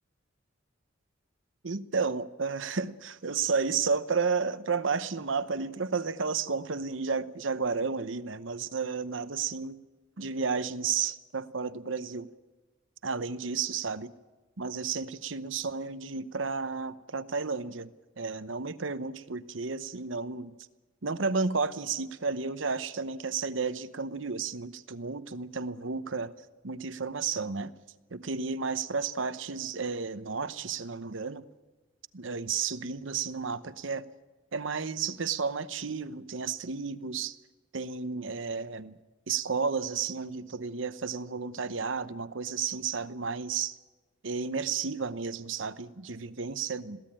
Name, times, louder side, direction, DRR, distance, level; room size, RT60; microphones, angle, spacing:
voice 1, 1.6-9.8 10.2-12.3 13.0-14.1 14.6-17.9 18.2-20.5 21.0-26.3 26.6-27.7 28.1-31.4 32.1-34.0 34.5-37.4 37.7-39.0 39.3-43.8 44.2-47.0, right 5 dB, 70° right, 13 dB, 0.9 m, -32 dB
22.0 x 16.5 x 8.8 m, 1.2 s
head